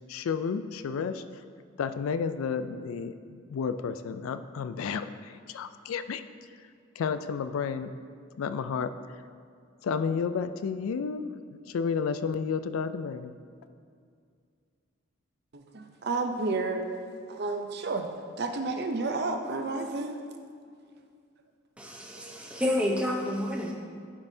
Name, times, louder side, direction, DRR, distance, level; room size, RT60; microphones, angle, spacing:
voice 1, 0.1-1.4 1.8-6.2 7.0-7.9 8.4-8.9 9.8-11.3 11.7-13.4, left 6 dB, 85° left, 11 dB, 0.3 m, -31 dB
voice 2, 15.5-16.8 17.3-18.1 18.4-20.2, right 3 dB, 50° right, 5 dB, 0.6 m, -31 dB
voice 3, 21.8-23.7, left 1 dB, 5° right, -1 dB, 0.7 m, -29 dB
11.0 x 5.4 x 2.7 m, 2.2 s
head